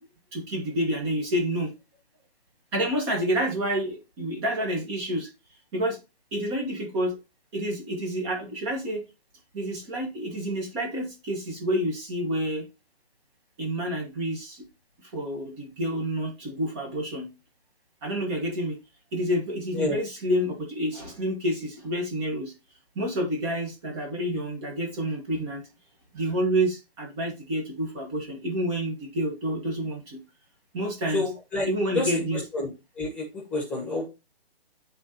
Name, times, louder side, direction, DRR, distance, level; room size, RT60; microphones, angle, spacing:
voice 1, 0.3-1.7 2.7-5.3 5.7-6.0 6.3-7.2 7.5-9.0 9.5-12.6 13.6-14.6 15.0-17.3 18.0-18.8 19.1-22.5 22.9-25.6 26.1-30.2 30.7-31.3 31.6-32.4, equal, 25° right, 1.5 m, -28 dB
voice 2, 31.1-31.7 31.9-32.1 32.5-32.7 33.0-33.2 33.5-34.1, left 2 dB, 5° left, 1.5 m, -28 dB
10.5 x 3.9 x 2.8 m
hypercardioid pair, 155°, 31 cm